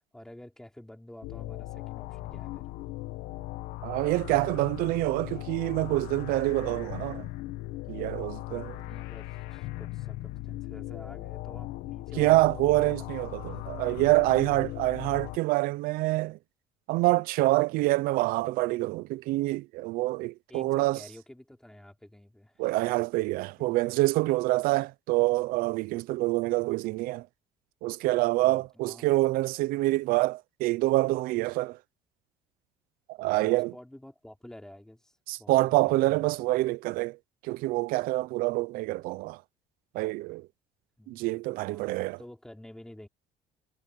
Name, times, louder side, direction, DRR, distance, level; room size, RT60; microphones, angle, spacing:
voice 1, 0.0-2.7 8.8-13.1 13.5-13.6 20.5-22.6 23.6-24.0 28.4-29.1 33.4-36.3 41.0-41.3 41.7-43.1, left 1 dB, 5° left, 4.7 m, -50 dB
sound 1, 1.2-15.4, left 18 dB, 85° left, 1.4 m, -38 dB
voice 2, 3.8-7.3 7.9-8.8 12.2-16.4 16.9-21.0 22.6-27.3 27.8-31.8 33.1-33.7 35.3-37.2 37.4-39.4 39.9-40.5 41.1-42.2, right 20 dB, 75° right, 0.6 m, -26 dB
cardioid pair, 155°, 15 cm